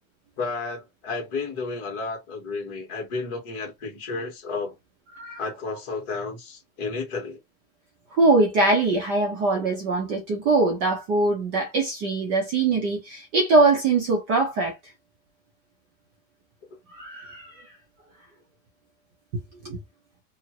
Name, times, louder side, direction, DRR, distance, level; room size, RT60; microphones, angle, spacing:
voice 1, 0.4-4.8 5.4-7.4, left 4 dB, 40° left, 1.6 m, -32 dB
voice 2, 8.1-14.7 16.9-17.6 19.6-19.8, right 3 dB, 25° right, 0.6 m, -22 dB
2.9 x 2.5 x 2.9 m
supercardioid pair, 175°, 42 cm